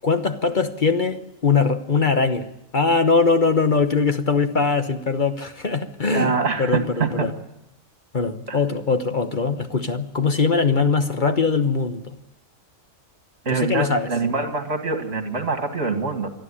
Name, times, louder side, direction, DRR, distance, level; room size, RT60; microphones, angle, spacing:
voice 1, 0.0-2.5 2.7-7.3 8.1-12.1 13.5-14.1, left 4 dB, 40° left, 1.1 m, -21 dB
voice 2, 6.1-7.3 8.5-8.6 13.5-16.3, right 4 dB, 50° right, 2.3 m, -24 dB
27.5 x 10.5 x 9.9 m
omnidirectional pair, 1.4 m